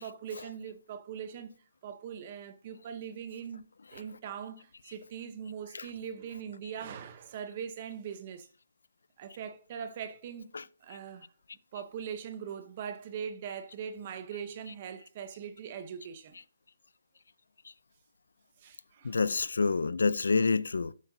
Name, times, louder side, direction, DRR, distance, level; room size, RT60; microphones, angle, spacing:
voice 1, 0.0-1.6 1.8-8.5 9.2-10.5 10.8-11.3 11.7-16.4 18.6-19.2, right 7 dB, 30° right, 0.9 m, -41 dB
voice 2, 19.0-20.9, left 4 dB, 80° left, 0.4 m, -27 dB
11.5 x 5.7 x 2.7 m
hypercardioid pair, 165°, 0 cm